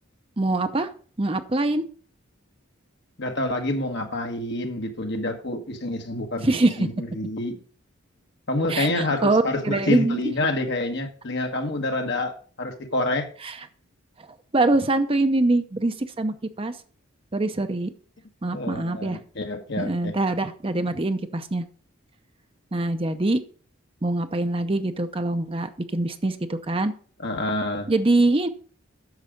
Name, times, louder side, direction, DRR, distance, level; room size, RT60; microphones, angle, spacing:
voice 1, 0.4-0.9 1.2-1.8 6.4-6.9 8.7-10.3 13.4-13.6 14.5-16.8 17.3-17.9 18.4-19.2 19.8-21.6 22.7-23.4 24.0-26.9 27.9-28.5, right 2 dB, 25° right, 0.6 m, -24 dB
voice 2, 3.2-6.5 6.8-7.6 8.5-13.3 18.5-20.1 27.2-27.9, left 2 dB, 55° left, 1.5 m, -27 dB
9.6 x 6.7 x 5.1 m
head